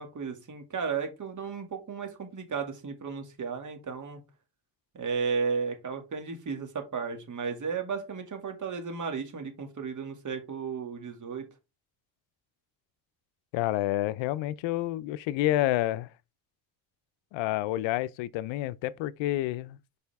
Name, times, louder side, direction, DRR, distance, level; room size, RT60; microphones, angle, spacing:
voice 1, 0.0-4.2 4.9-11.5, right 5 dB, 40° right, 2.2 m, -34 dB
voice 2, 13.5-16.1 17.3-20.0, left 15 dB, 85° left, 0.5 m, -29 dB
6.8 x 4.9 x 3.5 m
cardioid pair, 90°, 44 cm